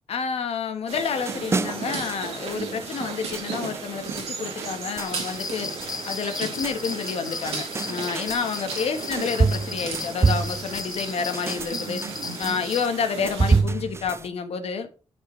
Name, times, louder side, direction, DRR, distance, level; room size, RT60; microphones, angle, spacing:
voice 1, 0.1-5.7 6.0-12.0 12.4-14.9, left 6 dB, 70° left, 1.1 m, -29 dB
sound 1, 0.9-13.6, right 5 dB, 90° right, 2.0 m, -35 dB
sound 2, 1.2-14.3, right 4 dB, 25° right, 0.4 m, -28 dB
sound 3, 5.0-12.9, left 5 dB, 35° left, 0.4 m, -36 dB
10.0 x 4.5 x 3.1 m
supercardioid pair, 55°, 11 cm